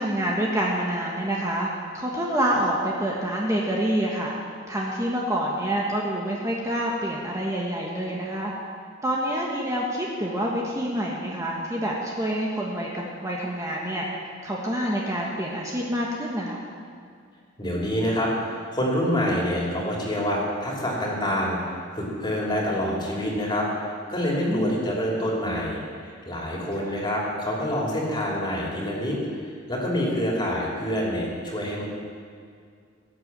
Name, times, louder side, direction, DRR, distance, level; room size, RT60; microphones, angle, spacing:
voice 1, 0.0-1.7 1.9-4.3 4.7-8.5 9.0-14.0 14.4-16.6 24.4-24.7 26.8-27.0, right 1 dB, 15° right, -3 dB, 1.3 m, -27 dB
voice 2, 17.6-31.8, equal, 25° left, -3 dB, 3.1 m, -27 dB
17.5 x 7.9 x 7.3 m, 2.2 s
head